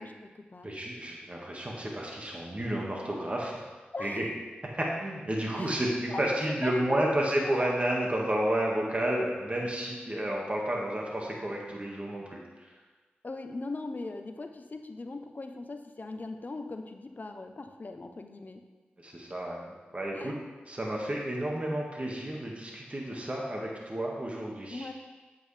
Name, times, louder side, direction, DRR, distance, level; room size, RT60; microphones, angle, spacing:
voice 1, 0.0-0.7 3.9-4.3 5.5-7.5 13.2-18.6 20.1-20.4 24.7-24.9, left 3 dB, 45° left, 6 dB, 0.9 m, -40 dB
voice 2, 0.6-3.6 4.0-4.3 4.7-12.4 19.0-20.3 20.7-24.9, right 1 dB, 35° right, -2 dB, 2.0 m, -31 dB
8.7 x 8.5 x 3.4 m, 1.3 s
cardioid pair, 40°, 4 cm